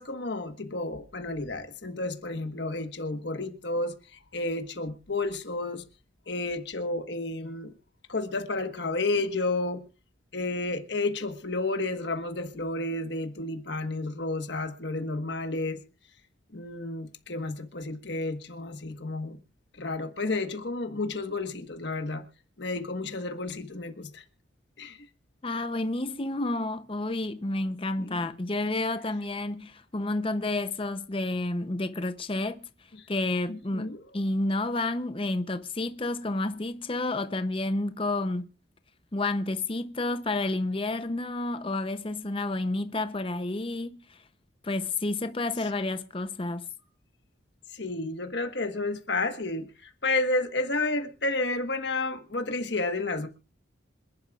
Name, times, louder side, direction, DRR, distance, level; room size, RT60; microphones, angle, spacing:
voice 1, 0.0-5.8 6.3-7.7 8.1-9.8 10.3-15.8 16.5-19.4 19.8-22.2 22.6-24.2 24.8-25.0 28.0-28.3 33.5-34.0 47.7-53.3, left 2 dB, 60° left, 1.4 m, -31 dB
voice 2, 25.4-32.7 33.1-38.5 39.1-44.2 44.6-46.7, left 2 dB, 25° left, 0.7 m, -30 dB
26.5 x 11.5 x 2.4 m
head